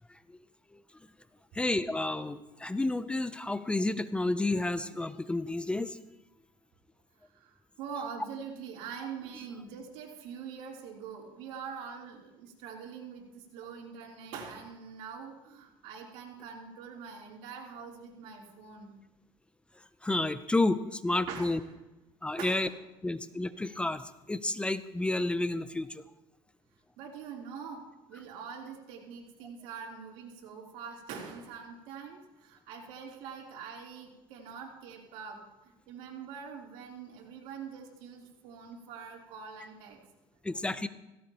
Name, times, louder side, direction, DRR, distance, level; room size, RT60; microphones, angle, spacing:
voice 1, 1.6-5.9 20.0-21.6 22.2-22.7 23.0-24.0 24.3-26.0 40.5-40.9, left 2 dB, 10° left, 13 dB, 0.5 m, -30 dB
voice 2, 7.2-18.9 21.3-21.6 22.4-22.7 27.0-40.0, right 6 dB, 85° right, -2 dB, 3.3 m, -44 dB
16.5 x 16.5 x 2.9 m, 0.99 s
cardioid pair, 115°, 11 cm